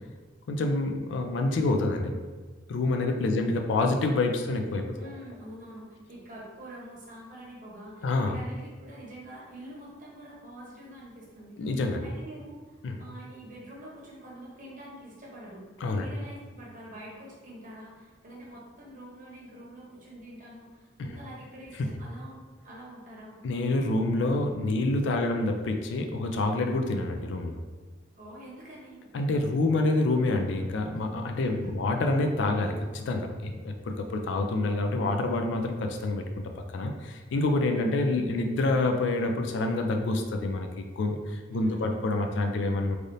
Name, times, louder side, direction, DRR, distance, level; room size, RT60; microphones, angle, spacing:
voice 1, 0.5-2.1 2.7-5.1 8.0-8.3 11.6-12.1 12.8-13.0 15.8-16.1 23.4-27.6 29.1-36.3 36.7-43.0, left 2 dB, 75° left, 4 dB, 0.4 m, -27 dB
voice 2, 5.0-11.7 12.0-15.6 15.9-22.4 22.6-23.4 28.2-29.0 31.4-31.9 41.5-42.0, right 1 dB, 45° right, -5 dB, 0.9 m, -46 dB
3.3 x 2.5 x 2.6 m, 1.4 s
head